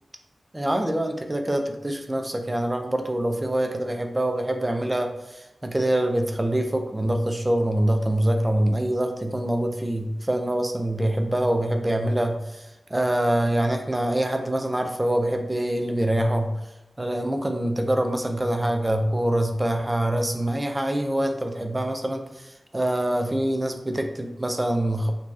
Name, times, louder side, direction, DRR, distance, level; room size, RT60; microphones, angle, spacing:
voice 1, 0.5-12.7 12.9-16.5 17.0-25.1, right 1 dB, 20° right, 5 dB, 0.4 m, -25 dB
3.1 x 2.6 x 2.3 m, 0.98 s
wide cardioid pair, 65°, 0 cm